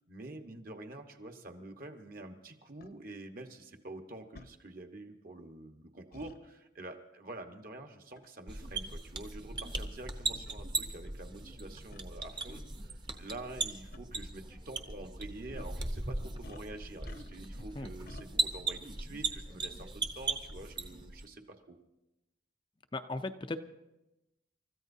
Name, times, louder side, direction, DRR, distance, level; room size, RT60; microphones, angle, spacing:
voice 1, 0.1-21.4 21.7-21.8, right 2 dB, 45° right, 5 dB, 1.3 m, -47 dB
sound 1, 2.8-2.9 4.3-4.5 6.1-6.4 8.2-8.4 9.2-9.3 10.1-10.2 10.5-10.6 11.9-12.1 13.4-13.6 13.9-14.0 15.5-15.8 16.4-17.5 18.1-18.3, left 2 dB, 50° left, 0.8 m, -52 dB
sound 2, 8.5-21.2, right 3 dB, 25° right, 0.9 m, -38 dB
voice 2, 22.9-23.6, left 2 dB, 25° left, 8 dB, 0.5 m, -37 dB
29.0 x 14.0 x 2.7 m, 0.97 s
head